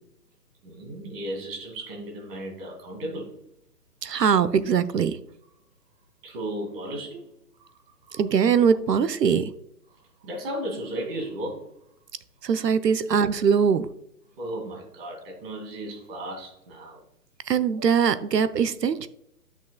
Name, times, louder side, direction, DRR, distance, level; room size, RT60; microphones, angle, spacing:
voice 1, 0.6-3.3 6.2-7.2 8.1-8.2 10.2-11.6 14.4-17.0, right 1 dB, 35° right, -1 dB, 2.5 m, -35 dB
voice 2, 4.0-5.2 8.2-9.5 12.4-13.9 17.5-19.1, right 7 dB, 85° right, 13 dB, 0.8 m, -22 dB
9.8 x 6.1 x 2.3 m, 0.75 s
figure-of-eight pair, 145°, 48 cm